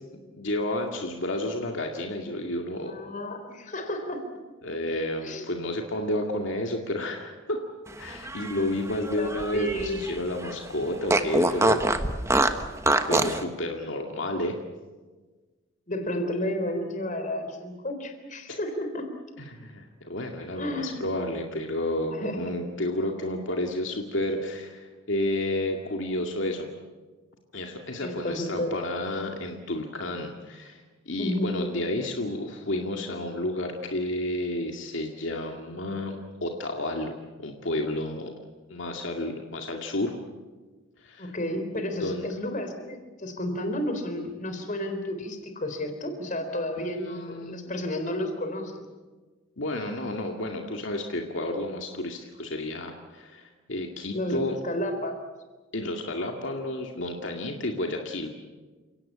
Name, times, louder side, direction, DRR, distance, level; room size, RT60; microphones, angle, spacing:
voice 1, 0.3-2.9 4.6-7.6 8.0-11.8 13.0-14.6 18.5-18.6 19.4-26.7 27.5-38.3 38.7-40.1 41.0-41.3 42.0-42.3 46.8-47.9 49.6-54.6 55.7-58.3, left 1 dB, 70° left, 2 dB, 2.2 m, -31 dB
voice 2, 2.9-4.3 5.2-5.5 8.9-10.2 15.9-19.1 20.5-21.0 22.1-22.5 28.0-28.7 31.2-31.6 41.2-48.9 54.1-55.2, left 1 dB, 40° left, 7 dB, 3.9 m, -32 dB
Fart, 8.1-10.1 10.4-10.5 11.1-13.4, right 2 dB, 15° right, 1.2 m, -24 dB
29.5 x 17.5 x 8.7 m, 1.3 s
head